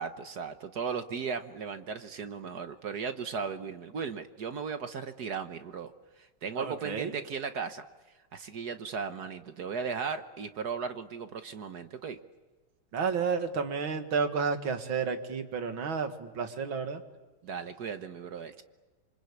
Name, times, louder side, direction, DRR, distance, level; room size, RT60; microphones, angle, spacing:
voice 1, 0.0-5.9 6.2-7.8 8.3-12.2 17.4-18.6, right 5 dB, 55° right, 9 dB, 1.6 m, -36 dB
voice 2, 6.6-7.1 12.9-17.0, right 5 dB, 75° right, 7 dB, 2.6 m, -31 dB
27.0 x 25.0 x 8.4 m, 1.2 s
omnidirectional pair, 2.2 m